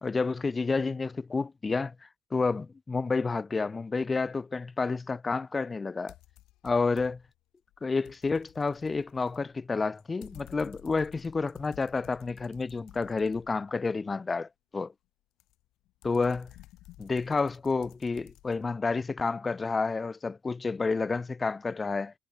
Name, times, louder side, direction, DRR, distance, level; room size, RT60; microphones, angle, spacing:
voice 1, 0.0-6.1 6.6-7.2 7.8-14.9 16.0-16.5 17.0-22.1, left 4 dB, 20° left, 0.3 m, -30 dB
sound 1, 6.1-7.4 7.7-13.9 15.4-18.6, left 17 dB, 80° left, 3.3 m, -54 dB
cardioid pair, 125°, 0 cm